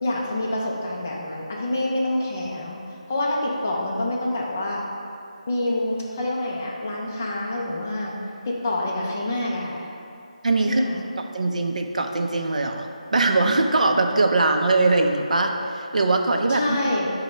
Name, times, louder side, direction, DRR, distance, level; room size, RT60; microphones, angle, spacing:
voice 1, 0.0-2.8 3.1-4.8 5.5-8.1 8.4-9.8 10.7-11.0 16.5-17.1, left 1 dB, 20° left, -3 dB, 0.4 m, -26 dB
voice 2, 10.4-10.8 11.3-16.8, right 2 dB, 65° right, 4 dB, 0.4 m, -21 dB
5.3 x 2.1 x 4.3 m, 2.6 s
figure-of-eight pair, 180°, 4 cm